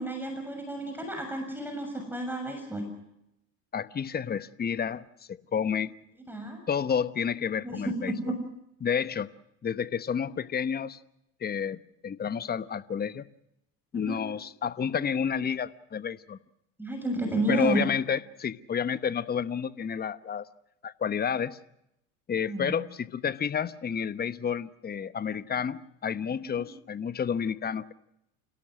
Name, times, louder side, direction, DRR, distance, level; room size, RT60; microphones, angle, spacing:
voice 1, 0.0-2.9 6.3-6.6 7.6-7.8 8.1-8.3 13.9-14.2 16.8-17.9 22.5-22.7 26.6-26.7, right 2 dB, 5° right, 4 dB, 6.8 m, -31 dB
voice 2, 3.7-5.0 5.3-5.9 6.7-8.1 8.8-9.3 9.6-11.0 11.4-13.3 13.9-16.4 17.5-20.5 20.8-21.6 22.3-27.9, left 7 dB, 25° left, 14 dB, 1.1 m, -30 dB
29.0 x 17.5 x 6.3 m, 0.82 s
hypercardioid pair, 85°, 38 cm